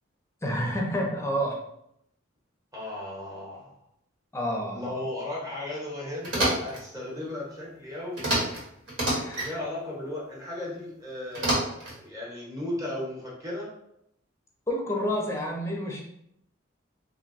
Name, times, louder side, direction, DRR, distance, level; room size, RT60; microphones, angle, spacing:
voice 1, 0.4-1.6 4.3-5.0 9.1-9.6 14.7-16.1, equal, 15° left, -1 dB, 0.6 m, -29 dB
voice 2, 2.7-3.8 4.7-8.5 9.3-13.7, left 1 dB, 15° right, -5 dB, 1.1 m, -36 dB
sound 1, 6.2-6.8 8.2-8.6 8.9-9.5 11.3-12.0, right 1 dB, 65° right, 1.4 m, -27 dB
2.6 x 2.2 x 4.0 m, 0.75 s
head